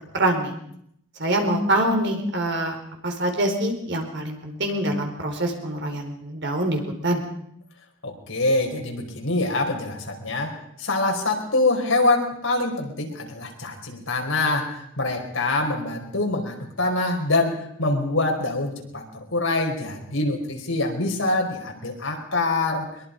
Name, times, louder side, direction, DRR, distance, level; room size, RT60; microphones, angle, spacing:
voice 1, 0.1-0.5 1.2-2.8 3.0-7.2, right 1 dB, 60° right, 3 dB, 4.4 m, -25 dB
voice 2, 8.0-10.5 10.8-22.9, left 2 dB, 75° left, 2 dB, 4.8 m, -25 dB
23.0 x 22.0 x 5.3 m, 0.71 s
head